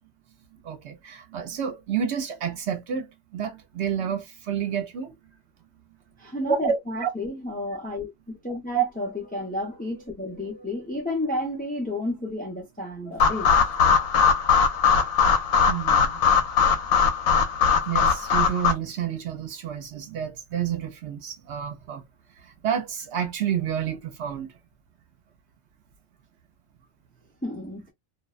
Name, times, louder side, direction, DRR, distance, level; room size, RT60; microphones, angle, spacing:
voice 1, 0.6-5.2 6.5-7.1 8.7-8.8 15.7-16.2 17.9-22.0 22.4-24.5, right 8 dB, 65° right, 0.8 m, -29 dB
voice 2, 6.2-13.7 27.4-27.9, left 1 dB, 10° left, 0.4 m, -32 dB
sound 1, 13.2-18.7, left 6 dB, 70° left, 0.9 m, -20 dB
2.6 x 2.1 x 2.3 m
omnidirectional pair, 1.3 m